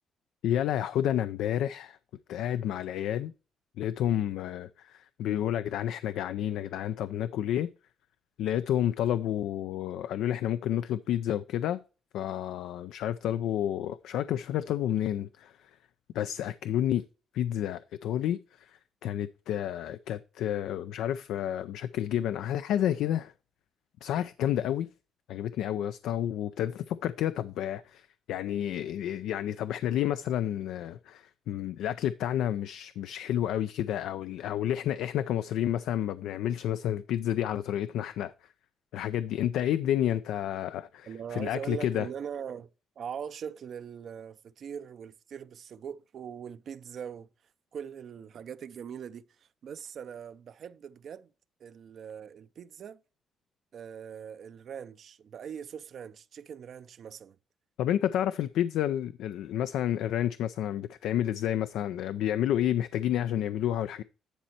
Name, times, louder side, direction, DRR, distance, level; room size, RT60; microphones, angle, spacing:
voice 1, 0.4-2.0 2.3-3.3 3.8-7.7 8.4-11.8 12.1-15.5 16.1-17.0 17.3-23.3 24.0-24.9 25.3-38.3 38.9-42.1 57.8-64.0, left 11 dB, 85° left, 0.4 m, -30 dB
voice 2, 41.1-42.7 43.0-47.3 47.7-51.3 51.6-53.0 53.7-57.4, right 7 dB, 60° right, 0.5 m, -41 dB
10.0 x 4.2 x 4.4 m
cardioid pair, 90°, 0 cm